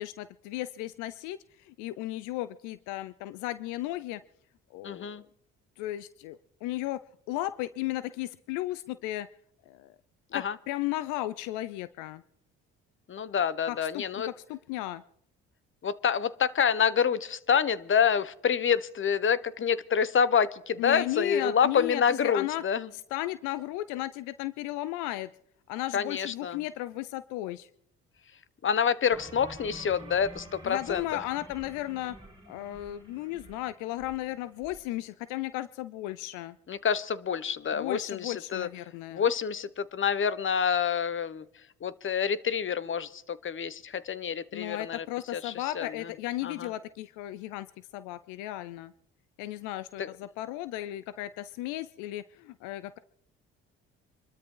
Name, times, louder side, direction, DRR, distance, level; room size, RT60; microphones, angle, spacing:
voice 1, 0.0-4.2 4.7-5.2 5.8-7.0 7.3-9.3 9.7-10.0 10.3-12.2 13.7-15.0 20.8-22.6 22.9-25.3 25.7-27.7 30.6-32.2 32.5-36.6 37.7-39.2 44.5-48.9 49.4-53.0, left 16 dB, 90° left, 16 dB, 0.6 m, -35 dB
voice 2, 4.8-5.2 10.3-10.6 13.1-14.3 15.8-22.9 25.9-26.6 28.6-31.0 36.7-38.7 39.1-41.4 41.8-45.1 45.3-46.1 46.4-46.7 50.0-50.1, left 7 dB, 45° left, 17 dB, 1.1 m, -27 dB
sound 1, 29.1-34.8, right 2 dB, 15° right, 3.8 m, -49 dB
26.0 x 13.0 x 3.9 m, 0.69 s
supercardioid pair, 70°, 29 cm